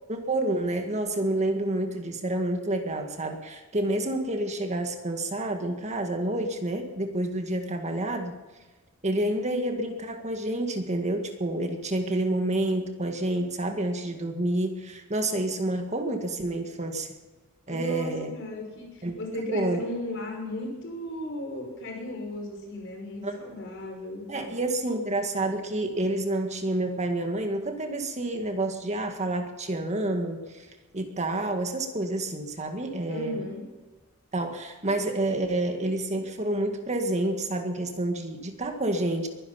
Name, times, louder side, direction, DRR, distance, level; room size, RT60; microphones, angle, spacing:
voice 1, 0.1-8.4 9.0-17.1 17.7-18.3 19.0-19.2 19.5-19.8 23.2-23.4 24.3-30.7 30.9-33.4 34.3-39.3, right 1 dB, 35° right, 5 dB, 1.9 m, -29 dB
voice 2, 17.7-24.6 33.1-33.6, left 1 dB, 60° left, 1 dB, 5.7 m, -36 dB
22.0 x 11.0 x 5.8 m, 1.2 s
head